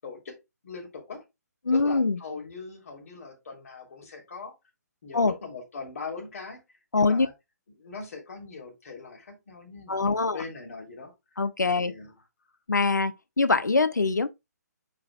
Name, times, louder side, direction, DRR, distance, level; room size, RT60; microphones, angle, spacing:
voice 1, 0.0-1.3 1.7-4.5 5.0-6.6 6.9-7.3 7.8-11.1 11.6-12.1, left 4 dB, 55° left, 3.2 m, -41 dB
voice 2, 1.7-2.2 5.1-5.3 6.9-7.3 9.9-10.4 11.4-11.9 12.7-14.3, left 3 dB, 85° left, 0.7 m, -23 dB
8.3 x 5.0 x 2.3 m
figure-of-eight pair, 135°, 9 cm